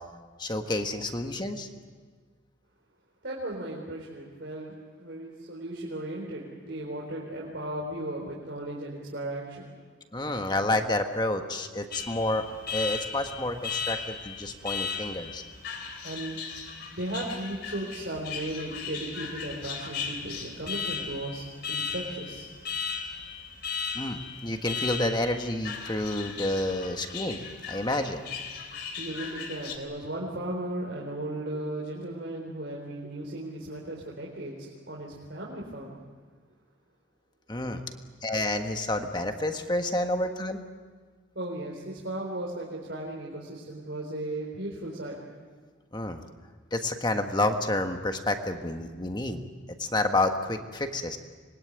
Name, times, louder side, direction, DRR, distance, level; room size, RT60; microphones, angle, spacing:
voice 1, 0.4-1.7 10.1-12.4 12.7-15.4 23.9-27.4 27.7-28.3 37.5-37.8 38.2-40.6 45.9-46.2 46.7-49.4 49.8-51.2, left 1 dB, 20° left, 5 dB, 1.5 m, -29 dB
voice 2, 3.2-4.7 5.0-9.7 16.0-16.4 16.9-22.5 29.0-35.9 41.3-45.2, right 1 dB, 60° right, -3 dB, 4.3 m, -36 dB
Alarm, 11.9-29.8, left 6 dB, 55° left, 3.4 m, -37 dB
26.0 x 21.5 x 9.5 m, 1.5 s
head